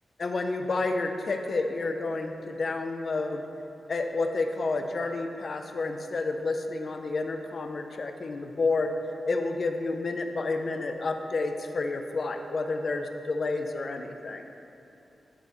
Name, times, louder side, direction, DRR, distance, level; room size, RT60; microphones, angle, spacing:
voice 1, 0.2-3.4 3.9-8.9 9.2-14.4, left 3 dB, 50° left, 5 dB, 0.5 m, -30 dB
12.0 x 5.4 x 3.1 m, 2.9 s
wide cardioid pair, 125°, 0 cm